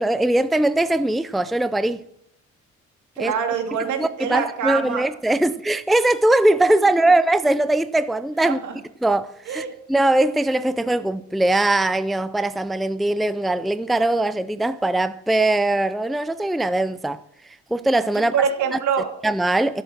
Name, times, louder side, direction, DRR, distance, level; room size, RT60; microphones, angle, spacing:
voice 1, 0.0-2.0 3.2-3.3 4.0-8.6 9.0-17.2 17.7-18.3 19.2-19.8, right 2 dB, ahead, 0.5 m, -21 dB
voice 2, 3.2-5.0 8.4-8.7 9.5-9.7 18.1-19.1, right 7 dB, 75° right, 2.9 m, -25 dB
14.5 x 8.1 x 5.9 m
cardioid pair, 90°, 30 cm